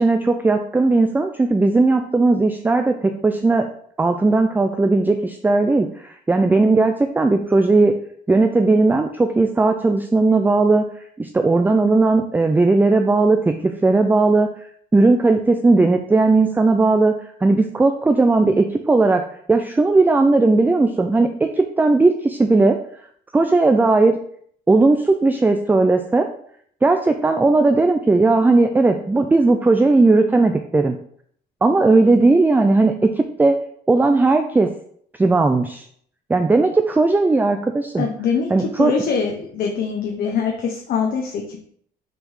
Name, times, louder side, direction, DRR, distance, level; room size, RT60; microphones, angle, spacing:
voice 1, 0.0-3.7 4.0-8.0 8.3-10.9 11.2-14.5 14.9-17.1 17.4-22.8 23.3-24.2 24.7-26.3 26.8-31.0 31.6-33.6 33.9-34.7 35.2-35.9 36.3-38.1 38.5-38.9, right 3 dB, 10° right, 6 dB, 0.4 m, -17 dB
voice 2, 38.0-38.5 38.8-41.7, left 6 dB, 60° left, 1 dB, 1.0 m, -23 dB
5.9 x 3.6 x 5.5 m, 0.63 s
cardioid pair, 110°, 17 cm